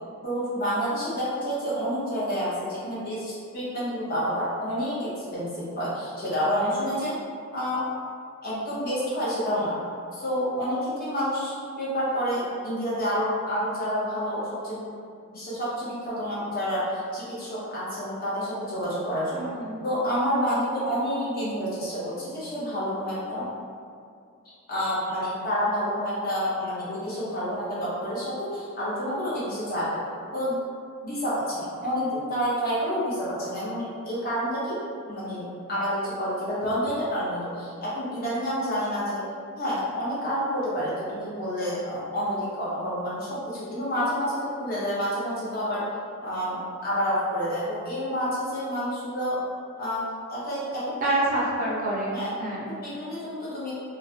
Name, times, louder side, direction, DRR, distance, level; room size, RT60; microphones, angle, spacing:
voice 1, 0.2-7.1 7.5-7.8 8.4-9.8 10.1-14.8 15.3-19.5 19.8-23.5 24.7-30.0 30.3-30.6 31.0-39.2 39.6-45.8 46.2-49.4 49.8-50.0 50.3-51.1 51.7-51.8 52.1-52.3 52.7-53.7, equal, 40° left, -9 dB, 0.7 m, -29 dB
voice 2, 19.3-19.9 51.0-52.7, right 1 dB, 40° right, -5 dB, 0.4 m, -27 dB
2.4 x 2.1 x 2.7 m, 2.3 s
head